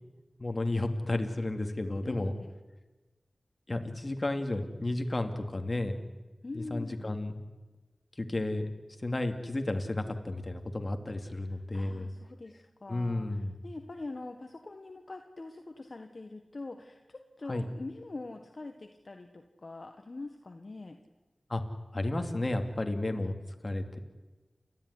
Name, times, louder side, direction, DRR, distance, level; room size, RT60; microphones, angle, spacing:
voice 1, 0.4-2.3 3.7-6.0 6.5-7.4 8.2-8.7 9.0-12.1 12.9-13.6 17.5-17.7 21.5-21.6 21.9-23.4 23.6-24.0, left 2 dB, 40° left, 6 dB, 2.6 m, -32 dB
voice 2, 2.0-2.5 6.4-7.1 11.5-21.0 23.1-23.2 23.9-24.0, left 2 dB, 55° left, 5 dB, 1.5 m, -44 dB
29.5 x 14.0 x 9.7 m, 1.2 s
wide cardioid pair, 50°, 0 cm